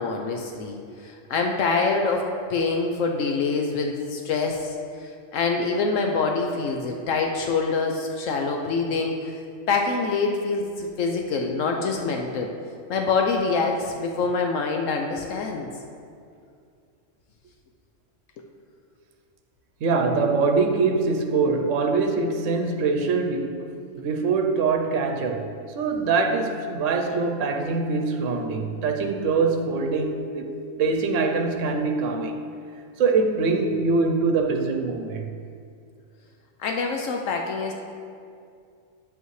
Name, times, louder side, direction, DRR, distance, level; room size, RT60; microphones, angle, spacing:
voice 1, 0.0-9.4 9.7-12.5 12.9-15.7 36.6-37.7, left 4 dB, 75° left, 2 dB, 1.0 m, -25 dB
voice 2, 19.8-23.7 24.0-30.5 30.8-32.4 33.0-35.3, right 4 dB, 75° right, 3 dB, 1.0 m, -23 dB
9.7 x 8.1 x 3.2 m, 2.4 s
omnidirectional pair, 1.3 m